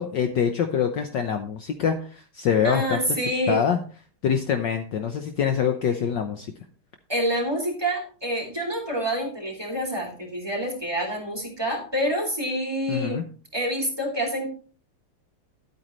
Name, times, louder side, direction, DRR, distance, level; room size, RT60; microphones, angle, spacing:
voice 1, 0.0-3.0 3.5-3.8 4.2-6.5 12.9-13.2, left 7 dB, 65° left, 6 dB, 1.3 m, -25 dB
voice 2, 2.6-3.6 7.1-13.2 13.5-14.5, equal, 10° right, 0 dB, 2.8 m, -27 dB
11.5 x 8.8 x 3.2 m, 0.40 s
omnidirectional pair, 2.3 m